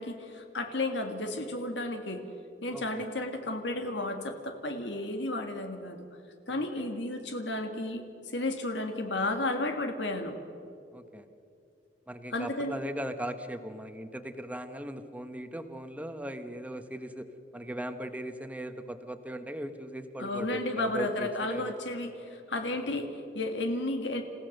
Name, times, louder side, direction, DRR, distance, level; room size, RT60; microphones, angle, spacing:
voice 1, 0.0-2.2 2.6-6.0 6.5-10.4 12.3-12.7 20.2-24.2, left 2 dB, 85° left, 5 dB, 2.0 m, -33 dB
voice 2, 2.7-3.1 6.5-6.9 10.9-11.3 12.1-21.7 22.7-23.0, right 1 dB, 10° right, 8 dB, 1.1 m, -39 dB
28.5 x 16.0 x 6.6 m, 2.5 s
head